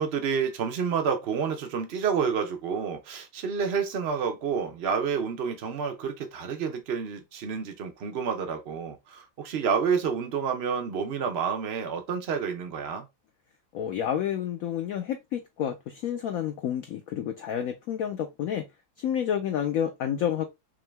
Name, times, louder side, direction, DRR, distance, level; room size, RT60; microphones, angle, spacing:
voice 1, 0.0-13.1, right 6 dB, 80° right, 0.5 m, -29 dB
voice 2, 13.7-15.7 16.0-18.6 19.0-20.5, left 9 dB, 85° left, 0.7 m, -29 dB
3.7 x 3.0 x 3.2 m
omnidirectional pair, 2.1 m